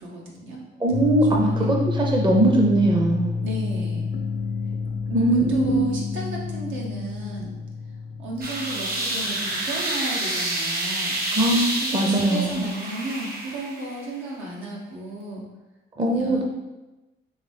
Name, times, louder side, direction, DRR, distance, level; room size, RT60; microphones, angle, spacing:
voice 1, 0.0-0.6 0.9-1.7 3.4-4.1 5.1-7.5 8.2-11.2 11.8-15.5 16.1-16.4, right 1 dB, 75° right, -3 dB, 1.1 m, -34 dB
voice 2, 0.8-3.4 5.1-5.8 11.3-12.6 16.0-16.4, right 1 dB, 25° right, 0 dB, 0.7 m, -21 dB
sound 1, 0.9-9.7, left 5 dB, 45° left, 0.5 m, -29 dB
sound 2, 8.4-14.0, right 1 dB, 50° right, 1.1 m, -28 dB
4.0 x 3.1 x 3.4 m, 1.1 s
cardioid pair, 90°, 20 cm